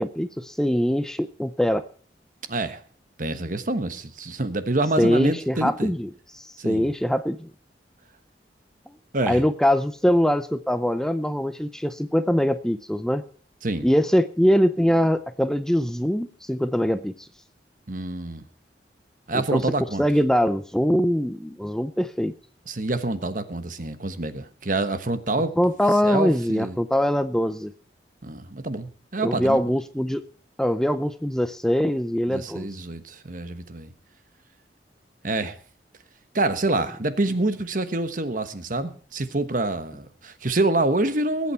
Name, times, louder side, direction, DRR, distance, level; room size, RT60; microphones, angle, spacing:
voice 1, 0.0-1.8 5.0-7.5 9.2-13.2 13.8-17.3 19.3-19.7 20.0-22.3 25.6-27.7 29.2-30.2 30.6-32.7, equal, 5° left, 0.5 m, -23 dB
voice 2, 2.5-2.8 3.2-5.9 6.6-6.9 9.1-9.4 13.6-13.9 17.9-18.4 19.3-20.0 22.7-25.5 26.0-26.8 28.2-29.6 32.3-33.9 35.2-35.6 36.3-41.5, right 2 dB, 50° right, 1.2 m, -26 dB
21.0 x 8.6 x 4.5 m
head